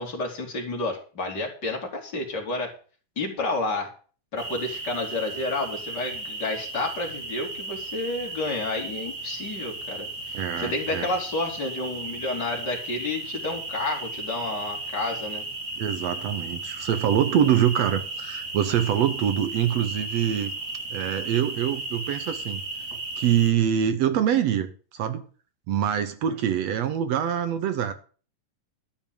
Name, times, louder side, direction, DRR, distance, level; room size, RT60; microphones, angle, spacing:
voice 1, 0.0-2.7 3.2-3.9 4.3-15.4, left 2 dB, 30° left, 1 dB, 3.4 m, -30 dB
sound 1, 4.4-23.5, right 2 dB, 35° right, 1.4 m, -35 dB
voice 2, 10.3-11.1 15.8-20.5 20.9-22.6 22.9-24.7 24.9-25.2 25.7-27.9, right 9 dB, 65° right, 10 dB, 1.8 m, -24 dB
12.5 x 5.1 x 8.9 m, 0.39 s
omnidirectional pair, 3.8 m